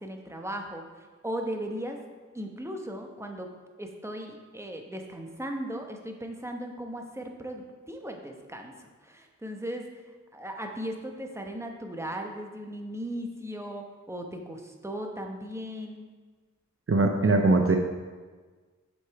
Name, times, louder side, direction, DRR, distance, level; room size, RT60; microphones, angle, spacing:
voice 1, 0.0-2.0 2.3-3.5 3.8-9.9 10.3-16.1, equal, 10° right, 3 dB, 0.9 m, -37 dB
voice 2, 16.9-17.8, right 2 dB, 50° right, 3 dB, 0.6 m, -21 dB
6.5 x 5.5 x 4.6 m, 1.4 s
wide cardioid pair, 40°, 30 cm